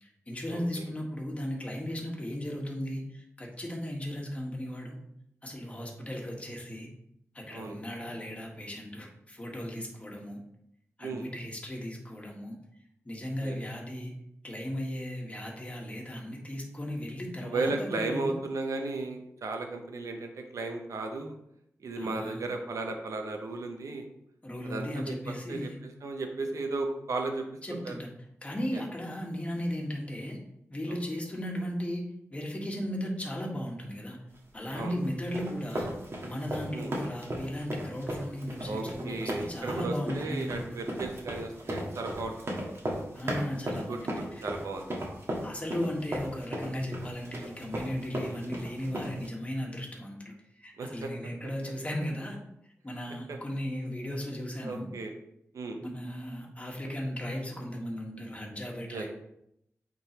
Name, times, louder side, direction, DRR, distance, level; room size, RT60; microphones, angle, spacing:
voice 1, 0.0-4.9 5.4-6.9 7.3-10.4 11.0-12.5 13.0-14.1 14.4-18.3 22.0-22.5 24.4-25.8 27.6-28.1 28.4-30.4 30.7-32.0 32.3-34.2 34.5-35.9 36.2-40.8 43.1-44.4 45.4-52.4 52.8-54.9 55.8-59.1, equal, 25° left, -1 dB, 1.6 m, -36 dB
voice 2, 0.5-0.8 7.5-7.8 11.0-11.3 13.4-13.6 17.4-21.3 21.8-24.1 24.6-27.4 27.8-27.9 28.7-28.8 31.1-31.2 34.7-34.9 36.7-36.9 38.6-42.6 43.9-44.0 44.4-44.9 48.2-48.4 50.8-51.1 53.3-53.4 54.6-55.1 55.5-55.8 58.9-59.1, right 3 dB, 90° right, 4 dB, 0.9 m, -35 dB
sound 1, 34.7-49.3, right 1 dB, 50° right, 1.6 m, -36 dB
8.5 x 3.9 x 3.0 m, 0.77 s
wide cardioid pair, 75°, 5 cm